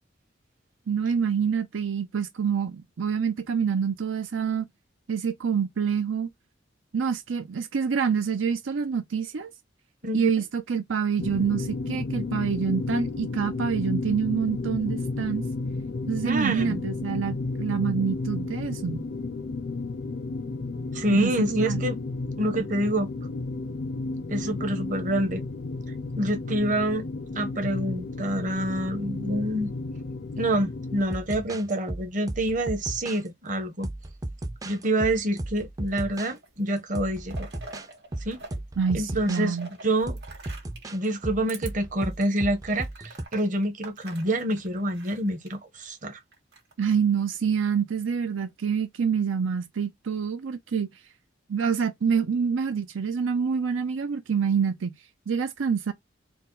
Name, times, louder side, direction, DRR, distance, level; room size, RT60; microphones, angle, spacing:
voice 1, 0.9-4.7 5.1-6.3 6.9-9.5 10.1-15.4 16.1-19.0 21.1-21.8 38.8-39.7 46.8-50.9 51.5-54.9 55.3-55.9, right 6 dB, 90° right, 0.5 m, -26 dB
sound 1, 11.2-31.0, left 3 dB, 55° left, 0.4 m, -32 dB
voice 2, 16.2-16.8 20.9-22.0 22.4-23.1 24.3-25.4 26.2-27.0 27.4-29.7 30.4-33.9 34.7-37.5 38.2-38.4 38.9-39.6 39.8-40.2 40.9-46.2, right 1 dB, 45° right, 1.0 m, -27 dB
sound 2, 31.0-33.3 33.8-36.3 36.9-37.9 38.1-39.4 40.1-43.2, right 1 dB, 20° right, 0.4 m, -35 dB
sound 3, 35.9-36.6 36.9-38.6 38.8-40.9 41.4-41.7 42.2-42.3 42.7-45.5 46.3-46.9, right 3 dB, 60° right, 1.9 m, -45 dB
4.4 x 2.1 x 3.8 m
head